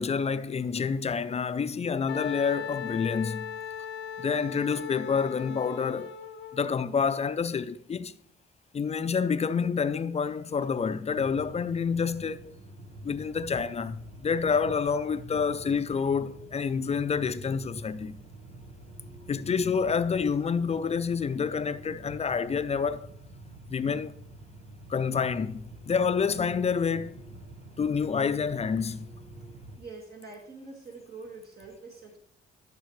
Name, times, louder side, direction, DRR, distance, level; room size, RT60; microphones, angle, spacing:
voice 1, 0.0-3.5 4.2-6.1 6.5-8.1 8.7-12.5 13.0-18.2 19.3-23.1 23.7-24.1 24.9-27.3 27.8-29.1, left 6 dB, 35° left, 0.5 m, -28 dB
Wind instrument woodwind instrument, 2.1-6.7, left 8 dB, 65° left, 0.8 m, -38 dB
sound 1, 11.1-29.8, right 1 dB, 80° right, 1.3 m, -47 dB
voice 2, 29.8-32.2, right 3 dB, 55° right, 2.0 m, -45 dB
13.0 x 6.7 x 3.2 m
cardioid pair, 90°, 20 cm